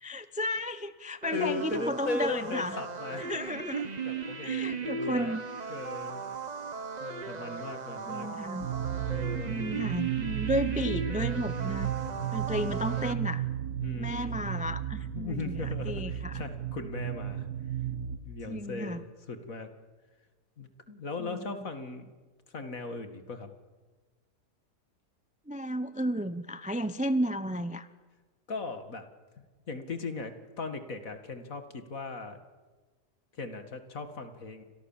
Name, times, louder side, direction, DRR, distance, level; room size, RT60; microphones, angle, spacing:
voice 1, 0.0-2.8 3.1-3.9 4.4-5.4 8.1-8.7 9.3-11.9 12.3-13.4 14.0-16.4 18.5-19.0 21.2-21.6 25.5-27.9, equal, 5° right, 12 dB, 0.6 m, -33 dB
sound 1, 1.2-13.1, right 5 dB, 30° right, 1.0 m, -37 dB
voice 2, 1.3-3.3 4.0-5.4 5.7-6.3 7.0-8.3 9.0-9.6 12.5-13.2 13.8-14.5 15.1-17.5 18.2-19.7 20.6-22.1 22.5-23.5 28.5-29.1 29.4-32.4 33.3-34.6, left 3 dB, 55° left, 8 dB, 2.5 m, -38 dB
sound 2, 8.6-18.2, right 10 dB, 65° right, 1.8 m, -34 dB
29.5 x 26.0 x 7.4 m, 1.3 s
omnidirectional pair, 1.8 m